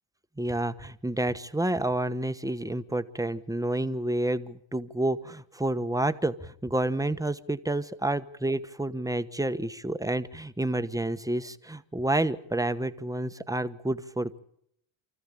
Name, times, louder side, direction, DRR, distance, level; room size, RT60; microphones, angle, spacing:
voice 1, 0.4-14.4, right 1 dB, 10° right, 10 dB, 1.2 m, -29 dB
29.0 x 14.5 x 8.6 m, 0.70 s
cardioid pair, 110°, 44 cm